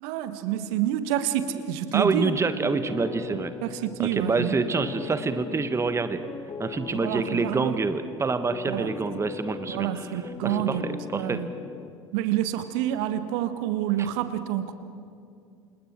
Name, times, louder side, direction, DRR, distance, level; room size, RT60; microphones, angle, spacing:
voice 1, 0.0-2.4 3.3-4.6 6.9-7.8 8.7-8.9 9.7-10.8 11.1-11.5 12.1-14.7, right 12 dB, 60° right, 10 dB, 1.5 m, -28 dB
voice 2, 1.9-3.5 4.0-6.2 6.6-11.4, right 4 dB, 20° right, 10 dB, 1.3 m, -27 dB
sound 1, 2.9-11.9, left 6 dB, 25° left, 0.8 m, -39 dB
29.5 x 27.5 x 4.5 m, 2.4 s
figure-of-eight pair, 70°, 16 cm